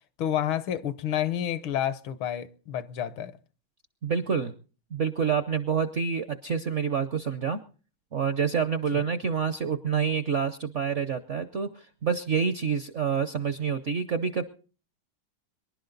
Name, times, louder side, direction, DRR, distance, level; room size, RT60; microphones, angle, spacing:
voice 1, 0.2-3.3 8.9-9.0, left 10 dB, 80° left, 1.7 m, -29 dB
voice 2, 4.0-4.5 4.9-7.6 8.1-14.4, right 6 dB, 60° right, 0.7 m, -27 dB
25.0 x 11.5 x 3.9 m
omnidirectional pair, 2.2 m